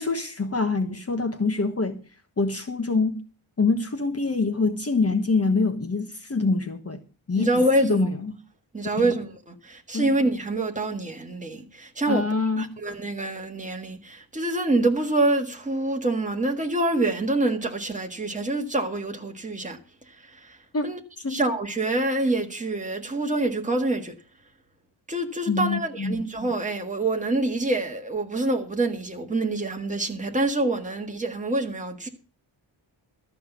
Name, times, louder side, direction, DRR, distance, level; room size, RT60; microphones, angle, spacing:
voice 1, 0.0-2.0 2.4-3.2 3.6-7.0 7.3-7.5 7.8-8.3 9.0-9.1 9.9-10.1 12.1-12.8 20.7-20.9 21.2-21.4 25.5-26.2, left 3 dB, 30° left, 1.3 m, -25 dB
voice 2, 7.4-8.2 8.7-12.3 12.6-21.0 21.3-24.2 25.1-32.1, right 2 dB, 15° right, 1.7 m, -26 dB
13.0 x 5.8 x 8.1 m
wide cardioid pair, 155°, 47 cm